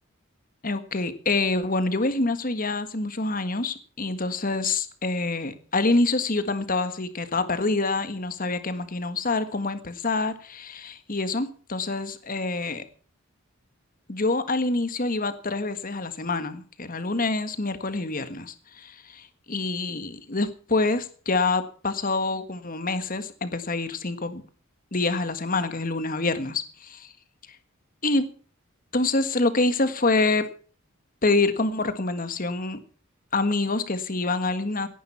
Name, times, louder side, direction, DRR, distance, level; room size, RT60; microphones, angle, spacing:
voice 1, 0.6-12.8 14.1-24.4 24.9-27.1 28.0-28.3 28.9-30.4 31.2-32.8 33.3-34.9, left 3 dB, 40° left, 11 dB, 1.7 m, -26 dB
17.5 x 11.0 x 5.7 m, 0.41 s
head